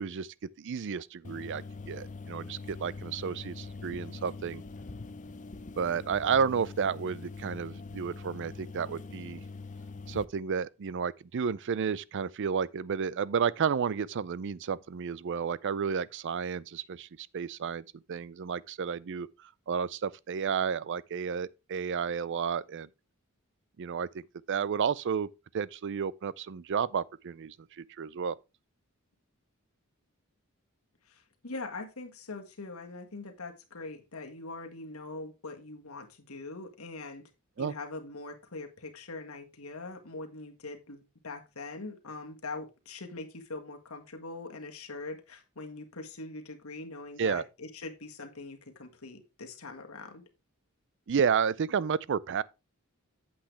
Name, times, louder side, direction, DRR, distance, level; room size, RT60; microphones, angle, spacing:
voice 1, 0.0-4.6 5.8-9.4 10.1-22.9 23.8-25.3 25.5-28.4 37.6-37.7 47.2-47.4 51.1-52.4, right 6 dB, 55° right, 0.4 m, -32 dB
sound 1, 1.2-10.2, left 3 dB, 35° left, 0.7 m, -43 dB
voice 2, 31.1-37.3 37.6-50.2, left 3 dB, 75° left, 1.7 m, -42 dB
8.6 x 7.7 x 3.3 m
head